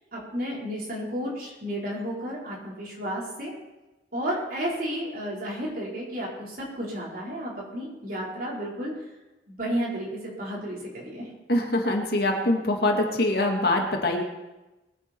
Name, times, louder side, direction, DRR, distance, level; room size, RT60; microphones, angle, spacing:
voice 1, 0.1-3.5 4.1-8.9 9.5-11.3, equal, 50° right, -4 dB, 4.7 m, -32 dB
voice 2, 11.5-14.2, left 1 dB, 60° left, 2 dB, 2.2 m, -24 dB
21.5 x 10.0 x 4.6 m, 1.0 s
head